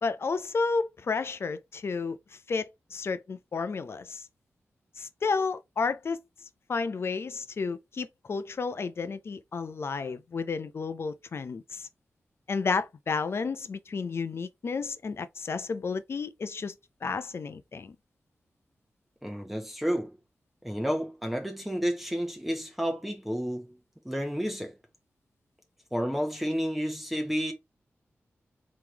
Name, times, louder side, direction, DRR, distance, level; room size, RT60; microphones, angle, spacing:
voice 1, 0.0-2.2 2.5-4.3 5.0-6.2 6.7-11.9 12.5-16.7 17.0-17.9, left 4 dB, 60° left, 0.6 m, -32 dB
voice 2, 19.2-20.2 20.6-23.8 24.0-24.8 25.9-27.5, equal, 5° right, 1.1 m, -31 dB
3.7 x 3.1 x 4.5 m
cardioid pair, 65°, 5 cm